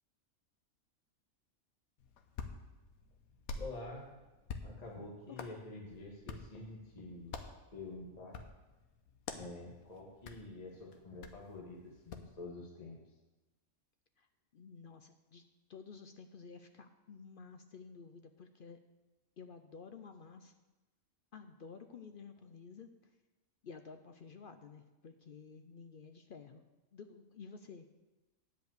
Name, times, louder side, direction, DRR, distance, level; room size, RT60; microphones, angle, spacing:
Hands, 2.0-12.3, left 4 dB, 80° left, 1.3 m, -49 dB
voice 1, 3.6-4.0 4.6-7.3 7.7-8.4 9.3-13.0, left 2 dB, 30° left, -2 dB, 1.5 m, -47 dB
voice 2, 14.5-15.4 15.7-18.8 19.4-20.5 21.3-23.1 23.6-26.6 26.9-27.9, left 5 dB, 60° left, 7 dB, 0.5 m, -52 dB
10.5 x 5.1 x 7.9 m, 1.1 s
omnidirectional pair, 1.5 m